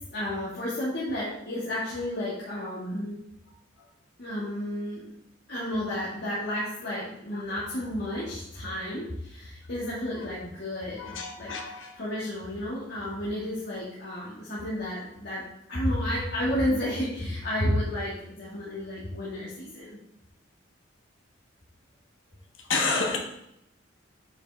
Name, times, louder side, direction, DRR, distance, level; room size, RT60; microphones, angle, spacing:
voice 1, 0.1-3.2 4.2-5.1 5.5-11.5 11.9-15.4 15.7-20.0, left 1 dB, 55° left, 2.1 m, -31 dB
voice 2, 11.0-12.0 22.6-23.2, left 4 dB, 85° left, 1.4 m, -30 dB
8.6 x 5.4 x 3.6 m
head